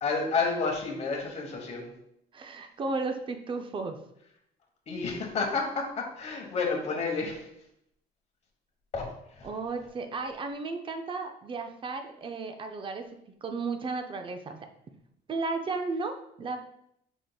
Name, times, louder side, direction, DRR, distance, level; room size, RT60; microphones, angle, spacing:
voice 1, 0.0-1.9 4.9-7.5 8.9-9.5, left 4 dB, 40° left, 1 dB, 1.1 m, -30 dB
voice 2, 2.3-4.0 9.4-13.0 13.4-14.6 15.3-16.6, right 3 dB, 30° right, 6 dB, 0.5 m, -34 dB
5.1 x 3.6 x 2.3 m, 0.76 s
cardioid pair, 110°, 17 cm